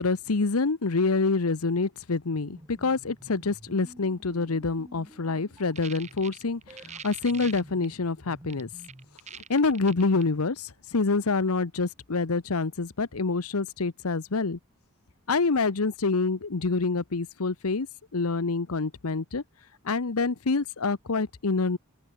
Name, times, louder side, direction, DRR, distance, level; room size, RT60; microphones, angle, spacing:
voice 1, 0.0-8.7 9.5-14.6 15.3-17.9 18.1-19.4 19.8-21.8, left 3 dB, 90° left, 0.9 m, -27 dB
sound 1, 2.3-9.2, equal, 15° right, 2.0 m, -51 dB
sound 2, 5.6-7.9 8.5-10.2, right 8 dB, 35° right, 1.2 m, -43 dB
open air
head